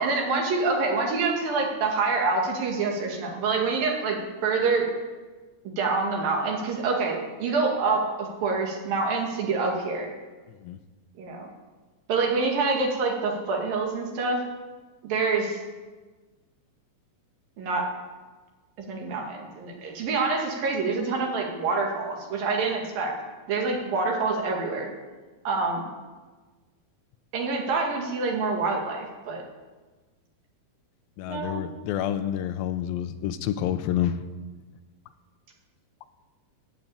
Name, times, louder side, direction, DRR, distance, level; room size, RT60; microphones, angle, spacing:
voice 1, 0.0-4.9 5.8-10.1 11.2-11.5 12.1-14.4 15.0-15.6 17.6-17.9 18.8-23.1 23.5-24.9 25.5-25.8 27.3-29.4 31.3-31.5, right 4 dB, 70° right, 1 dB, 3.9 m, -26 dB
voice 2, 31.2-34.2, left 11 dB, 80° left, 10 dB, 2.5 m, -28 dB
13.0 x 9.1 x 8.6 m, 1.3 s
omnidirectional pair, 4.2 m